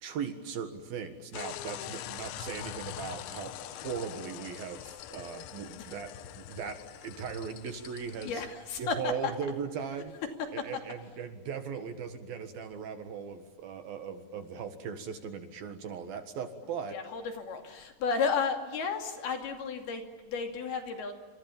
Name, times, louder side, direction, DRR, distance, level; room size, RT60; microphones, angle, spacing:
voice 1, 0.0-8.4 8.8-10.2 10.5-17.0, right 6 dB, 60° right, 8 dB, 3.2 m, -38 dB
sound 1, 1.3-8.4, left 12 dB, 85° left, 3.4 m, -43 dB
voice 2, 8.2-9.3 16.9-21.1, left 5 dB, 60° left, 4 dB, 4.4 m, -33 dB
29.0 x 27.0 x 7.2 m, 1.4 s
omnidirectional pair, 5.1 m